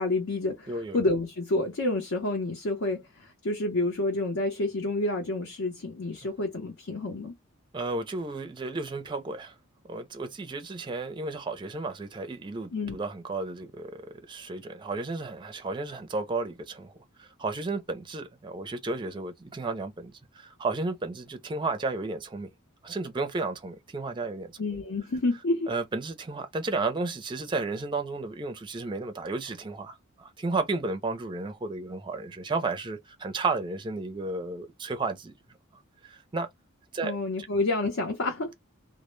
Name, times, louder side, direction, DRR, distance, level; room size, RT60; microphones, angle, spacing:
voice 1, 0.0-7.3 12.7-13.0 24.6-25.7 37.0-38.5, left 2 dB, 65° left, 0.7 m, -29 dB
voice 2, 7.7-9.5 9.8-16.9 17.2-22.5 22.8-24.6 25.7-35.3 36.0-36.5 36.9-37.2, right 3 dB, 20° right, 0.4 m, -33 dB
2.1 x 2.0 x 3.0 m
head